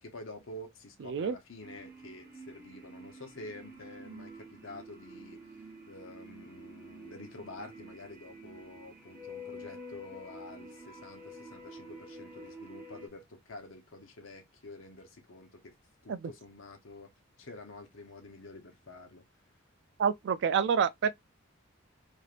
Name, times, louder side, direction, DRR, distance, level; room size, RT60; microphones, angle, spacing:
voice 1, 0.0-5.4 5.9-15.7 16.0-17.1 17.4-19.2, left 2 dB, 75° left, 0.9 m, -48 dB
voice 2, 1.0-1.4 16.1-16.3 20.0-21.1, right 7 dB, 60° right, 0.3 m, -28 dB
sound 1, 1.6-13.1, equal, 10° right, 0.7 m, -49 dB
3.2 x 2.5 x 2.5 m
head